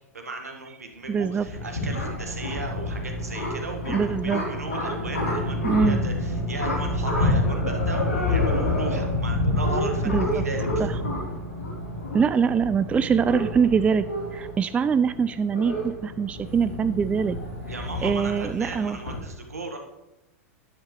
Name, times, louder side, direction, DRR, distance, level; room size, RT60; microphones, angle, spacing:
voice 1, 0.1-10.9 17.7-19.8, right 2 dB, 80° right, 4 dB, 1.7 m, -36 dB
sound 1, 1.1-19.2, left 1 dB, 70° left, 3.8 m, -28 dB
voice 2, 1.1-1.5 3.9-4.4 5.6-6.0 10.1-10.4 10.8-10.9 12.1-17.4 18.0-19.0, right 6 dB, 15° right, 14 dB, 0.3 m, -23 dB
11.0 x 9.9 x 3.2 m, 0.94 s
figure-of-eight pair, 95°, 8 cm